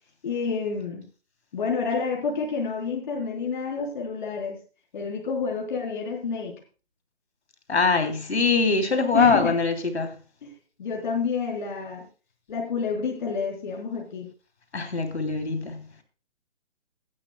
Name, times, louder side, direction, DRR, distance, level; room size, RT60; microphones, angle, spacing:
voice 1, 0.2-1.0 1.5-4.6 4.9-6.5 9.1-9.6 10.4-10.5 10.8-12.0 12.5-14.3, left 5 dB, 45° left, 3.9 m, -28 dB
voice 2, 7.7-10.1 14.7-15.8, left 4 dB, 70° left, 3.1 m, -23 dB
17.5 x 12.0 x 2.2 m
figure-of-eight pair, 145°, 34 cm